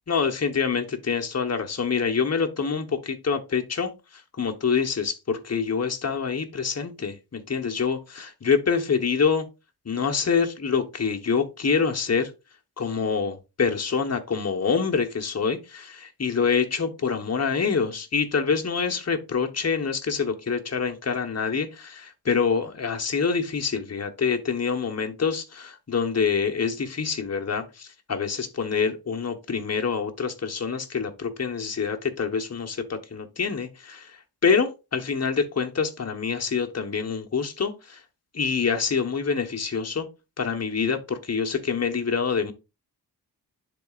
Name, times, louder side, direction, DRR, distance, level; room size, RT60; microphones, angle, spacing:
voice 1, 0.1-9.5 9.8-12.3 12.8-38.0 38.3-40.1 40.4-42.5, left 5 dB, 40° left, 1.1 m, -26 dB
10.5 x 3.9 x 2.4 m
wide cardioid pair, 90°, 40 cm